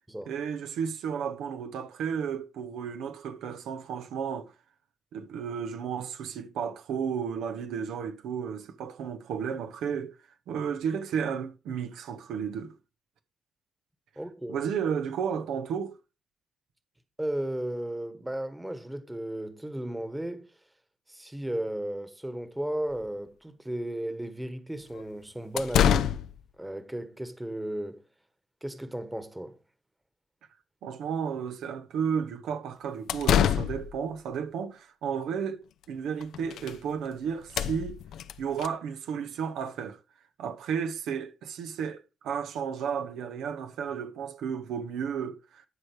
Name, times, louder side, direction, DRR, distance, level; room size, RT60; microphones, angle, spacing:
voice 1, 0.3-4.5 5.1-10.1 10.5-12.7 14.5-16.0 30.8-38.0 38.4-40.0 40.4-45.6, right 7 dB, 85° right, 1.1 m, -33 dB
voice 2, 14.2-14.6 17.2-20.5 21.1-26.1 26.6-28.0 28.6-29.5, right 1 dB, 10° right, 1.3 m, -34 dB
sound 1, 23.0-23.1 24.9-25.0 25.6-26.4 32.9-34.0 35.8-35.9 36.2-36.8 37.1-37.2 37.4-38.7, left 9 dB, 80° left, 0.6 m, -26 dB
12.5 x 5.0 x 4.8 m
cardioid pair, 90°, 0 cm